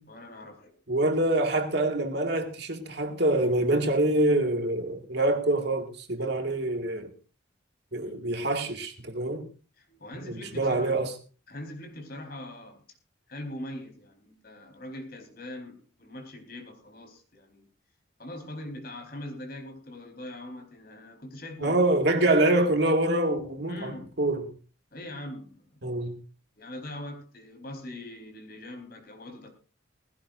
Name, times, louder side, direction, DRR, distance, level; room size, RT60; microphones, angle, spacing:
voice 1, 0.1-0.8 5.4-5.6 8.0-8.3 9.8-11.1 11.5-12.8 13.3-17.7 18.2-21.8 22.1-22.3 23.7-24.2 24.9-25.8 26.6-29.5, left 1 dB, 50° left, 4.4 m, -42 dB
voice 2, 0.9-7.1 7.9-9.5 10.1-11.1 21.6-24.5 25.8-26.2, right 1 dB, 60° right, 2.2 m, -25 dB
19.5 x 16.5 x 2.6 m
head